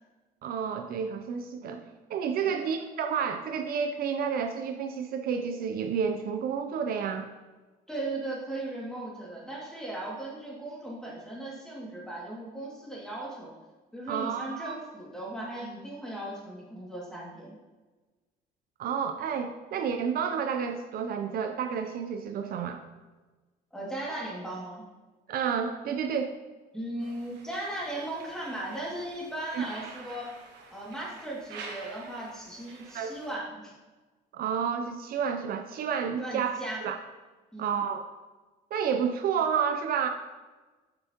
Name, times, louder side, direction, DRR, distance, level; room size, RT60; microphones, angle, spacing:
voice 1, 0.4-7.3 14.1-14.8 18.8-22.8 25.3-26.4 29.5-29.6 32.9-33.1 34.3-37.0 37.6-38.1 38.7-40.1, right 7 dB, 60° right, 6 dB, 0.5 m, -30 dB
voice 2, 7.9-13.5 13.9-17.6 23.7-24.8 26.7-30.3 30.7-33.7 36.2-36.8 37.5-37.8, right 1 dB, 5° left, -5 dB, 2.1 m, -37 dB
sound 1, 27.0-33.3, right 4 dB, 85° right, 1.1 m, -48 dB
7.8 x 5.6 x 2.9 m, 1.3 s
cardioid pair, 110°, 17 cm